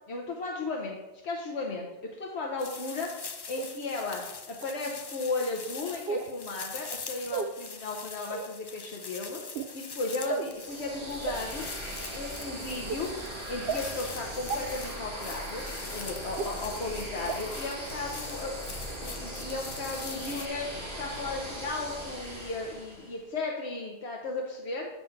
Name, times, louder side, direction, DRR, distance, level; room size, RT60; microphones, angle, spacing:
voice 1, 0.1-1.0 1.2-3.1 3.5-9.4 9.7-11.7 12.1-13.1 13.5-18.6 19.0-20.7 21.0-24.9, left 3 dB, 80° left, -1 dB, 1.2 m, -35 dB
sound 1, 2.6-20.5, left 5 dB, 40° left, 0.4 m, -43 dB
sound 2, 3.6-3.7 4.6-4.7 6.1-6.3 7.3-7.5 8.3-8.5 9.4-9.7 10.3-10.5 11.3-11.4 12.0-12.2 12.9-13.0 13.7-13.8 14.5-14.6 15.4-15.5 16.4-16.5 17.3-17.4 17.9-18.0, right 5 dB, 65° right, 0.8 m, -32 dB
sound 3, 10.5-23.2, right 1 dB, 25° right, 1.7 m, -39 dB
8.6 x 4.2 x 5.7 m, 1.0 s
omnidirectional pair, 1.1 m